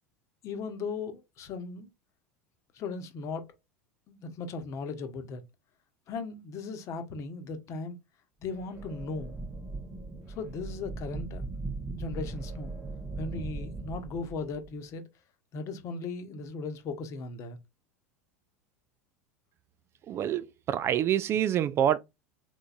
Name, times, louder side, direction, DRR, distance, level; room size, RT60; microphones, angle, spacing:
voice 1, 0.4-1.9 2.7-3.4 4.1-5.4 6.1-8.0 8.4-9.4 10.3-11.4 12.0-12.7 13.2-15.0 15.5-17.6, left 4 dB, 40° left, 1.0 m, -37 dB
sound 1, 8.5-14.7, right 3 dB, 20° right, 0.9 m, -39 dB
voice 2, 20.1-22.0, right 10 dB, 35° right, 0.4 m, -26 dB
3.8 x 3.5 x 2.4 m
figure-of-eight pair, 80°, 8 cm